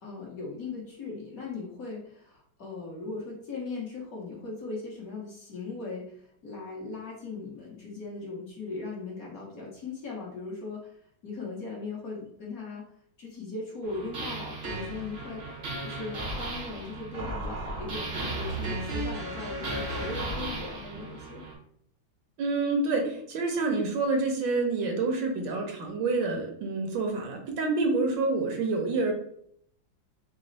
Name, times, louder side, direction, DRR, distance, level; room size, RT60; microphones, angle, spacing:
voice 1, 0.0-10.9 11.2-12.8 13.2-15.5 15.8-21.4, left 3 dB, 55° left, -4 dB, 1.3 m, -38 dB
sound 1, 13.8-21.5, right 2 dB, 50° right, 0.7 m, -35 dB
voice 2, 22.4-29.1, right 3 dB, 70° right, 2 dB, 1.4 m, -27 dB
4.0 x 2.0 x 3.9 m, 0.67 s
omnidirectional pair, 2.1 m